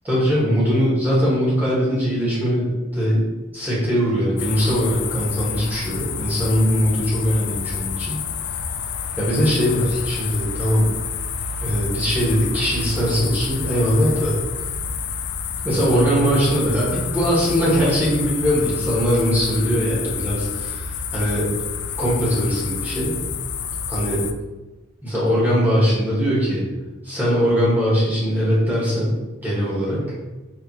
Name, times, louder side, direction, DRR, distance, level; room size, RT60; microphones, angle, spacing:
voice 1, 0.0-3.2 3.5-8.2 9.2-10.9 11.6-14.4 15.6-21.5 22.0-23.2 23.9-24.2 25.0-26.6 27.0-29.2 29.4-30.1, equal, 10° right, -8 dB, 1.4 m, -21 dB
sound 1, 4.4-24.3, left 6 dB, 55° left, 0.3 m, -29 dB
4.7 x 3.3 x 2.8 m, 1.1 s
head